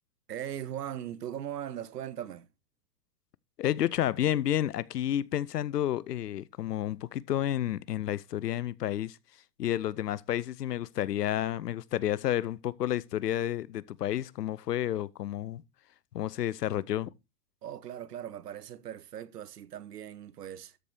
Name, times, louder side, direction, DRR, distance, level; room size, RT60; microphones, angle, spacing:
voice 1, 0.3-2.5 17.6-20.8, right 10 dB, 85° right, 1.1 m, -39 dB
voice 2, 3.6-9.2 9.6-15.6 16.1-17.1, left 12 dB, 90° left, 0.7 m, -30 dB
13.0 x 4.9 x 4.4 m
hypercardioid pair, 120°, 47 cm